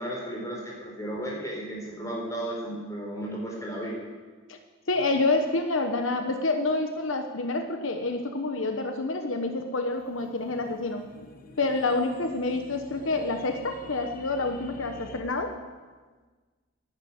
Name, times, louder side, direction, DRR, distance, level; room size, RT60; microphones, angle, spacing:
voice 1, 0.0-4.0, right 1 dB, 15° left, -2 dB, 4.5 m, -34 dB
voice 2, 4.9-11.1 11.6-15.5, left 3 dB, 75° left, 6 dB, 1.1 m, -28 dB
sound 1, 9.9-15.2, left 1 dB, 45° left, 1.2 m, -48 dB
11.0 x 11.0 x 9.6 m, 1.4 s
head